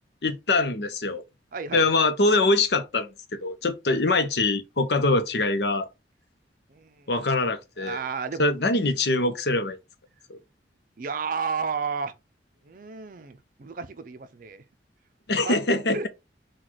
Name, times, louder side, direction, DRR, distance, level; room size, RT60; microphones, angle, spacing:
voice 1, 0.2-1.2 1.7-3.1 3.4-5.9 7.1-8.0 8.4-9.8 10.3-10.4 15.3-16.0, left 2 dB, 65° left, 0.7 m, -23 dB
voice 2, 1.5-1.9 6.7-7.1 7.8-8.4 11.0-12.1 12.6-14.6 15.4-15.6 15.9-16.1, right 5 dB, 50° right, 0.5 m, -32 dB
4.0 x 2.3 x 4.5 m
head